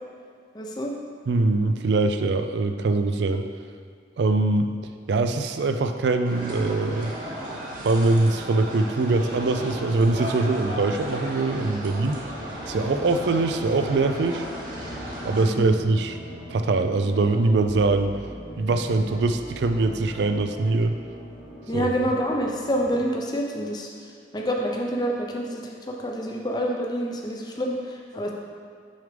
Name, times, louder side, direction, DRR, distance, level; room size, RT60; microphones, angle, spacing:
voice 1, 0.5-0.9 15.4-15.8 21.7-23.9 24.3-28.3, equal, 25° left, 0 dB, 0.6 m, -27 dB
voice 2, 1.3-3.5 4.2-4.7 5.1-7.1 7.8-12.2 12.7-14.5 15.2-16.2 16.5-18.2 18.6-21.0 21.7-21.9, right 3 dB, 70° right, 8 dB, 0.4 m, -23 dB
sound 1, 6.2-15.4, equal, 50° right, 1.1 m, -35 dB
sound 2, 9.1-22.0, right 1 dB, 90° left, 1.5 m, -43 dB
sound 3, 9.7-23.0, equal, 25° right, 1.1 m, -45 dB
6.3 x 3.5 x 5.1 m, 2.2 s
head